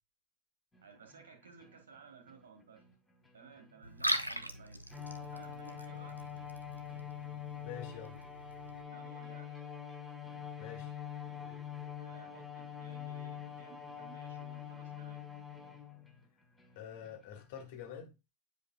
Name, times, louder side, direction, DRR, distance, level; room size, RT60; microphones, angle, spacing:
sound 1, 0.7-17.7, equal, 10° left, 2.1 m, -66 dB
voice 1, 0.8-2.8 3.3-6.2 8.9-9.5 11.9-15.2, right 5 dB, 65° right, 1.7 m, -57 dB
Liquid, 3.8-8.8, right 1 dB, 90° right, 0.5 m, -40 dB
Bowed string instrument, 4.9-16.1, left 9 dB, 10° right, 1.5 m, -45 dB
voice 2, 7.6-8.2 10.6-10.9 16.8-18.1, left 9 dB, 50° left, 1.8 m, -46 dB
9.2 x 4.9 x 2.2 m
figure-of-eight pair, 90°, 0 cm